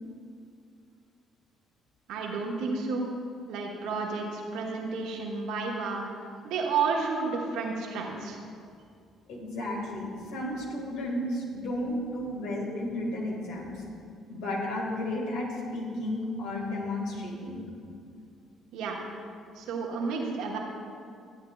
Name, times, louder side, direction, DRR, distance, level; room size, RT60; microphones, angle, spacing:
voice 1, 2.1-3.1 3.5-6.0 6.4-8.4 18.7-19.0 19.5-20.6, right 4 dB, 70° right, -1 dB, 1.2 m, -31 dB
voice 2, 9.3-13.7 14.3-17.6, left 1 dB, 70° left, -2 dB, 1.8 m, -33 dB
12.5 x 8.6 x 2.4 m, 2.3 s
hypercardioid pair, 50°, 0 cm